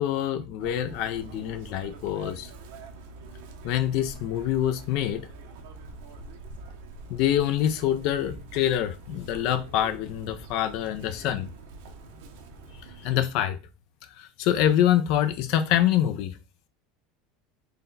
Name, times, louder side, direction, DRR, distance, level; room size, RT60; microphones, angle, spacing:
voice 1, 0.0-2.5 3.6-5.3 7.1-11.5 13.0-13.6 14.1-16.4, left 11 dB, 60° left, 0.4 m, -25 dB
Chirp tweet, 0.6-13.1, right 3 dB, 80° right, 0.7 m, -45 dB
3.9 x 2.2 x 3.9 m
supercardioid pair, 130°, 0 cm